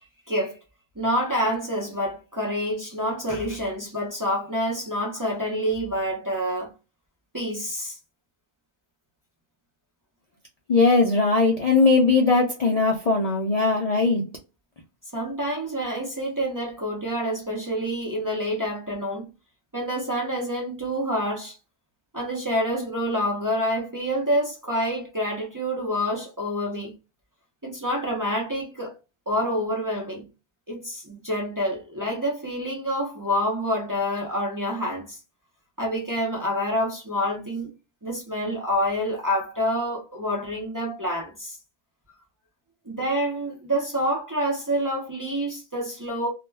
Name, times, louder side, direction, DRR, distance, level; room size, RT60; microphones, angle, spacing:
voice 1, 0.3-0.6 1.0-6.7 7.3-8.0 15.1-19.3 19.7-21.6 22.1-26.9 27.6-28.9 29.3-30.2 30.7-35.2 35.8-37.7 38.0-41.6 42.9-46.3, equal, 25° right, 0.5 m, -27 dB
voice 2, 10.7-14.2, left 3 dB, 55° left, 0.4 m, -19 dB
2.3 x 2.1 x 3.2 m
omnidirectional pair, 1.1 m